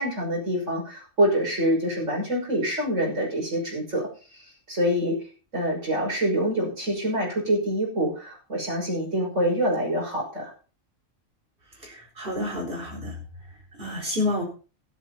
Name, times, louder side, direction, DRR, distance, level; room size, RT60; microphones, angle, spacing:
voice 1, 0.0-4.1 4.7-5.2 5.5-10.5, equal, 65° right, -2 dB, 6.4 m, -25 dB
voice 2, 11.7-13.2 13.5-14.4, left 2 dB, 40° right, 2 dB, 4.7 m, -30 dB
13.0 x 12.0 x 4.1 m, 0.35 s
omnidirectional pair, 1.4 m